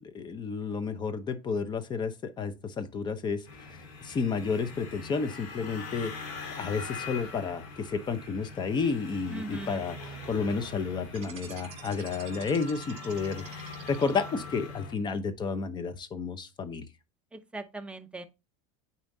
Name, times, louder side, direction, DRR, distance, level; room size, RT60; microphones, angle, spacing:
voice 1, 0.0-3.5 4.0-6.1 6.6-16.9, left 5 dB, 25° left, 0.8 m, -31 dB
sound 1, 3.4-14.9, left 3 dB, 70° left, 2.7 m, -43 dB
voice 2, 9.3-9.8 17.5-18.2, right 2 dB, 5° right, 0.7 m, -39 dB
sound 2, 11.1-14.6, right 8 dB, 40° right, 2.4 m, -47 dB
8.7 x 4.3 x 2.7 m
supercardioid pair, 125°, 17 cm